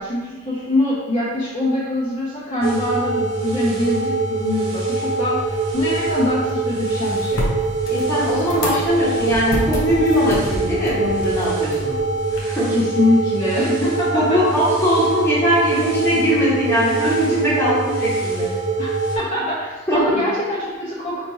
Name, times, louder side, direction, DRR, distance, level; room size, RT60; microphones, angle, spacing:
voice 1, 0.0-7.4 12.7-14.4 18.8-21.3, left 1 dB, 35° left, -9 dB, 0.9 m, -23 dB
sound 1, 2.6-19.2, right 3 dB, 85° right, 1.1 m, -23 dB
sound 2, 5.4-12.4, equal, 75° left, 0.8 m, -30 dB
voice 2, 7.9-12.0 12.3-12.8 14.1-18.5 19.9-20.0, equal, 10° left, -9 dB, 1.3 m, -20 dB
5.0 x 3.2 x 2.8 m, 1.2 s
head